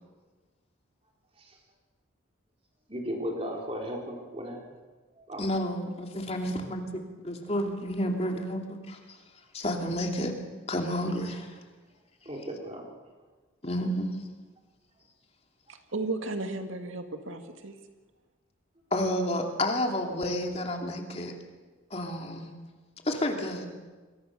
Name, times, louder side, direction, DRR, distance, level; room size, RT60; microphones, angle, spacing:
voice 1, 2.9-4.6 5.2-5.4 12.2-12.8, equal, 30° right, 0 dB, 4.3 m, -35 dB
voice 2, 5.4-9.2 9.5-10.3 10.7-11.6 13.6-14.2 18.9-21.3 21.9-22.5 23.0-23.7, left 1 dB, 30° left, 3 dB, 2.8 m, -30 dB
voice 3, 15.7-17.7, right 2 dB, 80° right, 6 dB, 2.1 m, -34 dB
28.5 x 22.0 x 6.7 m, 1.3 s
head